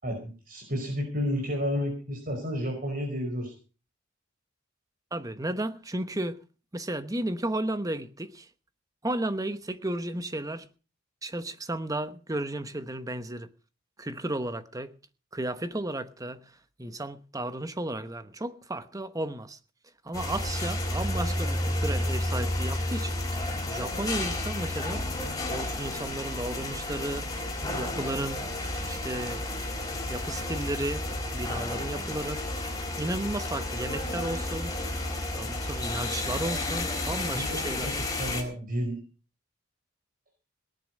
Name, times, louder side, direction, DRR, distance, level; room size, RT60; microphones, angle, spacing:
voice 1, 0.0-3.5 37.3-37.9 38.2-39.0, equal, 45° right, 5.0 m, -31 dB
voice 2, 5.1-6.4 6.7-8.5 9.0-10.7 11.2-13.5 14.0-14.9 15.3-19.6 20.0-23.4 23.7-25.0 25.5-27.3 27.7-28.4 28.8-29.4 30.1-31.1 31.3-32.4 32.7-34.7 35.3-38.0, right 1 dB, 20° right, 1.1 m, -33 dB
sound 1, 20.1-38.4, left 1 dB, 20° left, 4.4 m, -31 dB
18.5 x 10.5 x 5.4 m
head